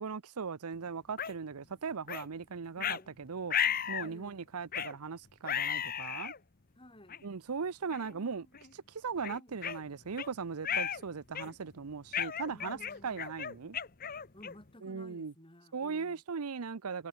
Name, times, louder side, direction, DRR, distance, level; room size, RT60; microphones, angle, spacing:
voice 1, 0.0-3.5 3.9-6.3 7.2-8.5 8.7-13.8 14.8-15.3 15.7-17.1, right 5 dB, 85° right, 0.7 m, -39 dB
sound 1, 1.2-1.3 2.1-2.3 2.8-3.0 3.5-4.1 4.7-4.9 5.4-6.4 7.1-7.2 7.9-8.1 8.5-8.7 9.2-10.3 10.6-11.0 11.3-11.7 12.1-14.7, left 8 dB, 40° left, 1.0 m, -34 dB
voice 2, 2.7-3.2 4.0-4.5 6.7-7.3 8.0-8.5 9.3-9.5 10.6-10.8 12.4-13.3 14.3-16.2, left 1 dB, 25° left, 5.0 m, -56 dB
head